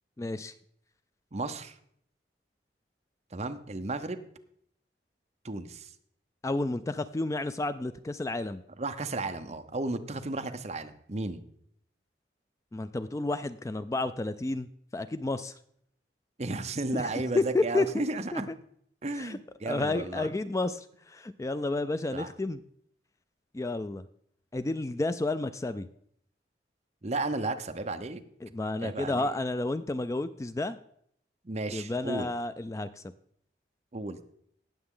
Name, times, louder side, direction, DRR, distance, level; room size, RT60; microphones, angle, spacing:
voice 1, 0.2-0.5 6.4-8.6 12.7-15.5 16.9-17.9 18.3-18.4 19.1-19.4 19.7-22.6 23.5-24.0 24.5-25.9 28.4-30.8 31.7-33.0, left 2 dB, 15° left, 12 dB, 0.3 m, -31 dB
voice 2, 1.3-1.7 3.3-4.2 5.4-5.9 8.8-11.4 16.4-18.5 19.0-20.3 22.1-22.3 27.0-28.2 28.8-29.3 31.4-32.3 33.9-34.2, right 2 dB, 35° right, 7 dB, 0.8 m, -34 dB
18.0 x 7.1 x 3.8 m, 0.68 s
head